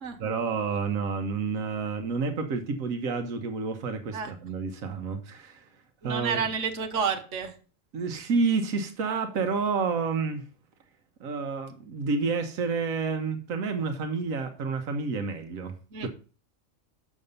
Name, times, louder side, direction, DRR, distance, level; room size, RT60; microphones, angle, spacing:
voice 1, 0.2-5.7 6.0-6.5 7.9-10.4 11.2-15.7 16.0-16.1, right 4 dB, 90° right, 6 dB, 1.3 m, -29 dB
voice 2, 6.0-7.5 15.9-16.1, right 6 dB, 65° right, 4 dB, 1.4 m, -30 dB
6.7 x 6.1 x 5.4 m, 0.37 s
omnidirectional pair, 1.4 m